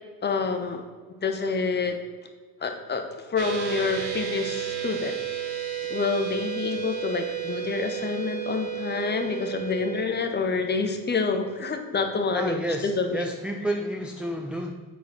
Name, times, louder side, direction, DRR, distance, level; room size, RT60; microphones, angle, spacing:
voice 1, 0.2-0.8 1.2-2.0 2.6-5.2 5.9-13.3, left 4 dB, 25° left, 6 dB, 1.1 m, -27 dB
sound 1, 3.4-10.1, right 10 dB, 60° right, 1.5 m, -32 dB
voice 2, 12.3-14.7, equal, ahead, 4 dB, 0.4 m, -30 dB
8.1 x 4.1 x 6.2 m, 1.5 s
supercardioid pair, 95°, 44 cm